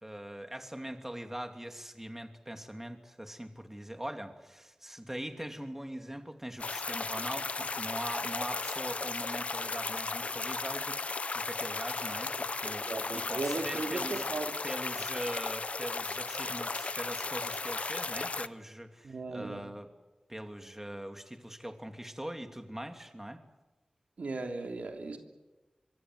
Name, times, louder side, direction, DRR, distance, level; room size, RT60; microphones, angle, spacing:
voice 1, 0.0-14.3 14.6-19.9 20.3-23.4, right 1 dB, 15° right, 5 dB, 2.9 m, -42 dB
sound 1, 6.6-18.5, left 3 dB, 70° left, 0.8 m, -35 dB
voice 2, 12.6-14.5 19.0-19.7 24.2-25.2, right 3 dB, 85° right, 3 dB, 3.1 m, -37 dB
25.5 x 23.0 x 7.8 m, 1.1 s
cardioid pair, 40°, 2 cm